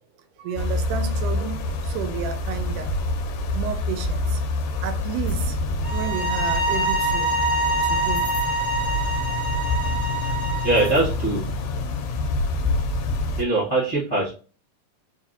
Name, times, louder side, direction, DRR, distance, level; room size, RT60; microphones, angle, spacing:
voice 1, 0.4-3.0 3.5-5.6 5.9-7.4 7.8-8.3, right 8 dB, 85° right, 2.1 m, -32 dB
sound 1, 0.6-13.4, left 2 dB, 90° left, 2.2 m, -26 dB
sound 2, 5.8-11.0, right 1 dB, 45° left, 0.8 m, -25 dB
voice 2, 10.6-11.5 13.4-14.3, right 2 dB, 75° left, 0.3 m, -22 dB
5.1 x 2.5 x 2.6 m
omnidirectional pair, 3.7 m